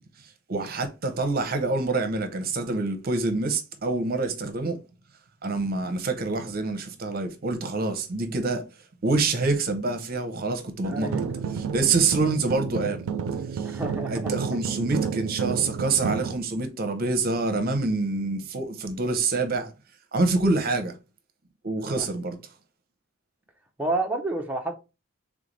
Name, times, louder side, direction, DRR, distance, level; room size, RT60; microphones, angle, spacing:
voice 1, 0.5-4.8 5.4-8.7 9.0-11.1 11.5-13.0 13.5-13.8 14.1-19.7 20.1-21.0 21.6-22.4, right 3 dB, 45° right, 0.7 m, -26 dB
sound 1, 10.8-16.3, right 6 dB, 90° right, 0.4 m, -31 dB
voice 2, 10.9-11.3 13.6-14.3 21.8-22.1 23.8-24.7, right 2 dB, 10° right, 0.5 m, -30 dB
3.5 x 3.2 x 3.9 m
head